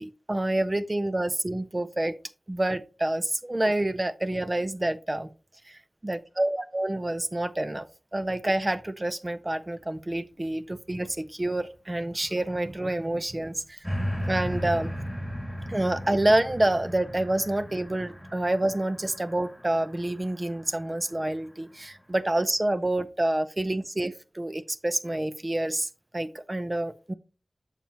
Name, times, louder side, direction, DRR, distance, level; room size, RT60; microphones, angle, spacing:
voice 1, 0.0-2.1 2.5-5.3 5.7-7.9 8.1-13.8 14.3-14.9 15.7-27.1, right 1 dB, 30° right, 0.6 m, -28 dB
sound 1, 13.8-21.2 21.8-21.9, equal, 5° left, 2.3 m, -36 dB
7.3 x 7.0 x 2.9 m
wide cardioid pair, 60°, 0 cm